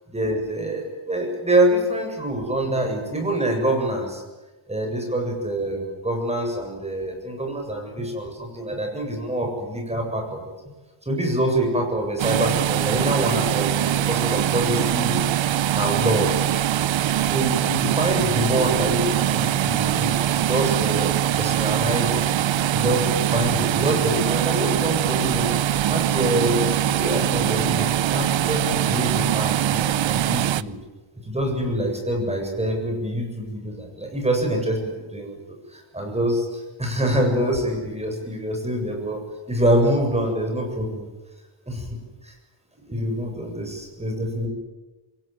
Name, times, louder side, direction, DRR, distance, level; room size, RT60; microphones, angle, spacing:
voice 1, 0.1-4.2 4.7-10.4 11.0-15.2 15.7-16.5 17.2-22.2 22.7-25.6 25.9-30.7 31.2-35.4 35.7-39.2 39.5-41.1 41.7-42.0 42.2-42.3 42.9-44.5, right 1 dB, 15° right, 2 dB, 7.6 m, -25 dB
sound 1, 12.2-30.6, right 11 dB, 65° right, 0.8 m, -22 dB
27.5 x 22.0 x 9.2 m, 1.1 s
wide cardioid pair, 165°, 49 cm